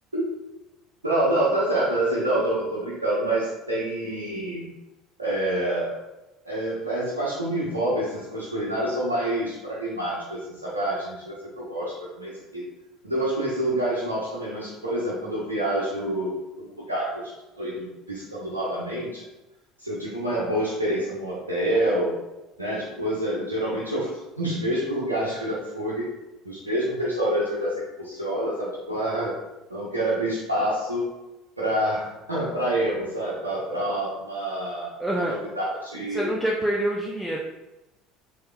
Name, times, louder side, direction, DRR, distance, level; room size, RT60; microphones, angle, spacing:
voice 1, 1.0-4.7 5.2-6.0 6.4-12.6 13.0-19.2 19.8-22.1 22.6-26.0 26.4-29.3 29.7-31.0 31.6-34.9 35.3-36.3, right 1 dB, 90° right, -8 dB, 0.9 m, -27 dB
voice 2, 35.0-35.4 36.1-37.4, right 1 dB, 10° right, -3 dB, 0.7 m, -26 dB
6.5 x 2.9 x 2.3 m, 0.99 s
figure-of-eight pair, 65°, 0 cm